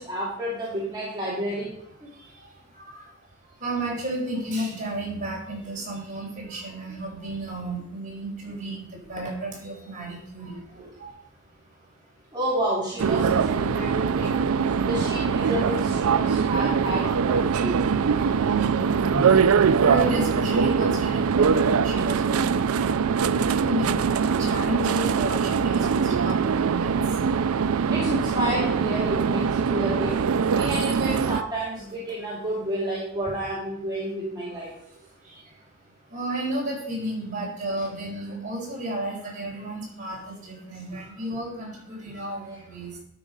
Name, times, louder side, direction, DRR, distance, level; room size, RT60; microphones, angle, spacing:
voice 1, 0.0-1.7 12.3-14.4 14.9-17.8 27.9-34.7, right 1 dB, 20° right, -6 dB, 2.2 m, -30 dB
voice 2, 2.1-12.0 14.5-14.9 16.2-27.6 34.7-43.0, right 1 dB, 35° right, -4 dB, 4.8 m, -34 dB
sound 1, 13.0-31.4, right 6 dB, 85° right, 0.4 m, -22 dB
12.5 x 6.1 x 5.2 m, 0.73 s
head